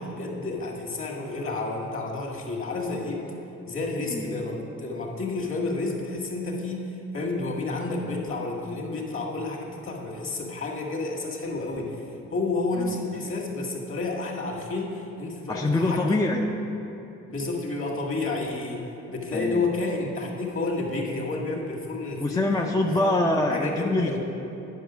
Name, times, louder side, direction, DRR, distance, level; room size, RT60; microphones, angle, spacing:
voice 1, 0.0-3.3 3.6-16.4 17.3-22.5 22.8-22.9 23.5-24.2, left 3 dB, 45° left, 0 dB, 1.8 m, -30 dB
voice 2, 4.1-4.5 12.8-13.3 15.5-16.5 19.3-19.6 22.2-24.2, left 2 dB, 10° left, 2 dB, 0.4 m, -25 dB
9.3 x 5.4 x 6.2 m, 2.9 s
cardioid pair, 90°, 30 cm